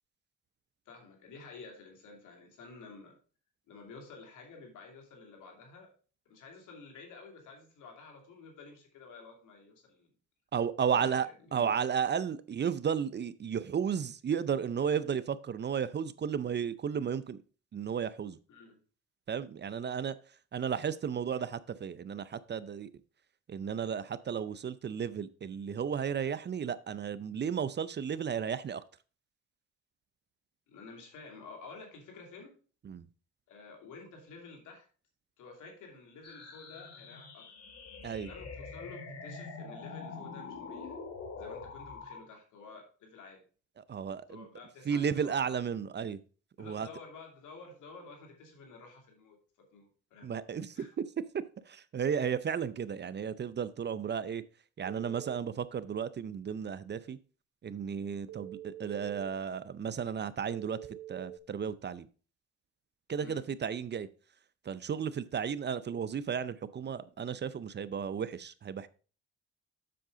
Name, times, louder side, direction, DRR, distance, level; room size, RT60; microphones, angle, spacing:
voice 1, 0.9-3.2 3.7-5.9 6.3-10.1 10.9-11.7 18.5-18.8 30.7-32.5 33.5-34.9 35.4-37.5 38.2-41.0 41.4-43.4 44.3-45.7 46.6-50.3 50.7-50.9 63.2-63.4, left 4 dB, 85° left, 2 dB, 2.7 m, -51 dB
voice 2, 10.5-17.4 17.7-18.4 19.3-20.1 20.5-22.9 23.5-28.8 32.9-33.1 38.0-38.3 43.8-44.4 44.9-46.2 46.6-46.9 50.2-50.8 51.7-54.4 54.8-57.2 57.6-60.8 61.1-62.1 63.1-64.1 64.7-68.9, right 7 dB, 35° right, 15 dB, 0.5 m, -33 dB
sound 1, 36.2-42.2, left 4 dB, 55° left, 2.0 m, -45 dB
Telephone, 54.8-55.4 58.3-59.3 60.5-61.4, right 13 dB, 75° right, 0.8 m, -45 dB
7.7 x 6.5 x 3.7 m, 0.37 s
cardioid pair, 90°, 30 cm